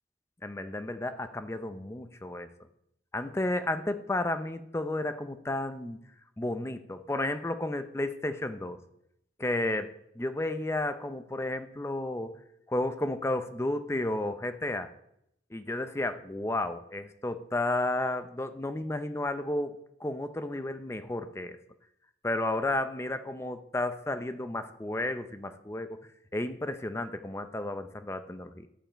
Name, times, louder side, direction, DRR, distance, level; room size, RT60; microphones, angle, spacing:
voice 1, 0.4-2.5 3.1-6.0 6.4-8.8 9.4-12.4 12.7-14.9 15.5-21.6 22.2-26.0 26.3-28.7, left 2 dB, 15° left, 10 dB, 0.5 m, -32 dB
10.0 x 7.1 x 4.5 m, 0.77 s
head